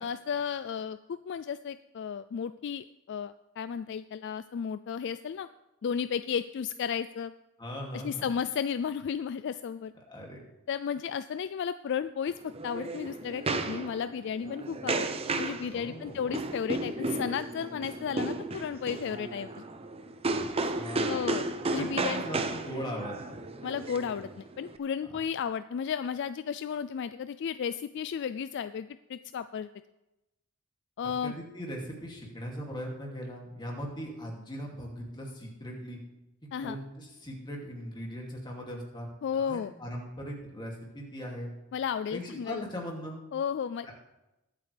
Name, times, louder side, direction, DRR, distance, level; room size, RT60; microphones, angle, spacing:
voice 1, 0.0-5.5 5.8-7.3 7.9-9.9 10.7-15.1 15.4-19.6 21.1-21.4 21.7-22.2 23.6-29.7 31.0-31.3 36.5-36.8 39.2-39.7 41.7-42.6 43.3-43.9, left 7 dB, 55° left, 13 dB, 0.3 m, -33 dB
voice 2, 7.6-8.4 10.1-10.4 15.7-16.4 20.3-21.3 21.7-23.4 25.1-25.2 31.0-36.0 36.6-39.1 39.3-41.5 42.1-43.2 43.9-44.0, equal, 20° left, -1 dB, 2.5 m, -40 dB
sound 1, 12.3-24.8, right 2 dB, 30° right, 0.7 m, -34 dB
21.0 x 8.4 x 3.4 m, 0.96 s
head